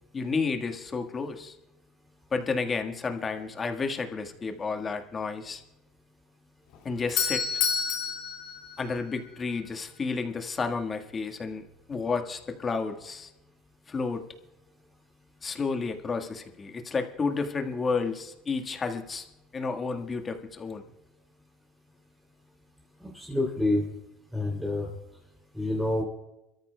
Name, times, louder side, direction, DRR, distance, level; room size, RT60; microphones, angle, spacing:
voice 1, 0.1-1.5 2.3-5.6 6.8-7.4 8.8-11.6 11.9-13.3 13.9-14.2 15.4-19.3 19.5-20.8, left 4 dB, 25° left, 5 dB, 1.5 m, -31 dB
Doorbell, 6.7-9.6, left 7 dB, 70° left, 2.1 m, -30 dB
voice 2, 23.0-23.8 24.3-24.9 25.5-26.0, left 2 dB, ahead, -2 dB, 3.0 m, -27 dB
28.0 x 13.5 x 2.3 m, 0.95 s
supercardioid pair, 110°, 0 cm